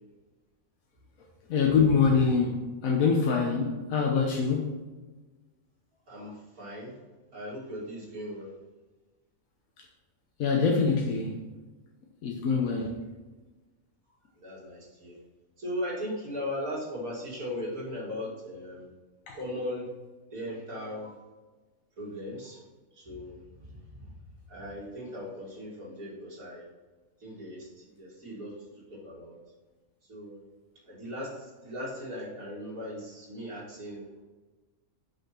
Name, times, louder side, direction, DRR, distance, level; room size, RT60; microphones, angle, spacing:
voice 1, 1.5-4.7 10.4-11.4 12.2-13.0 19.3-19.4, left 5 dB, 75° left, 1.2 m, -25 dB
voice 2, 6.1-7.0 7.3-8.5 12.8-12.9 14.3-15.2 15.6-18.8 19.3-19.9 20.3-21.2 22.0-24.2 24.5-26.7 27.2-29.4 30.0-30.4 30.8-34.2, left 1 dB, 85° right, 2.8 m, -38 dB
6.1 x 5.4 x 4.4 m
omnidirectional pair, 1.5 m